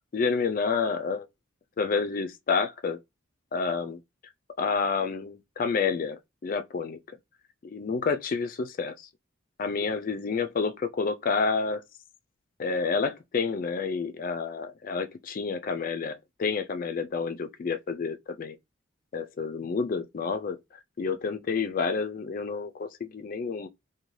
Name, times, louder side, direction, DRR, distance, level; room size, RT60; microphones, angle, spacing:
voice 1, 0.1-1.3 1.8-3.0 3.5-4.0 4.6-7.0 7.7-9.1 9.6-11.8 12.6-18.6 19.1-20.6 21.0-23.7, left 5 dB, 40° left, 0.3 m, -29 dB
2.6 x 2.2 x 3.0 m
head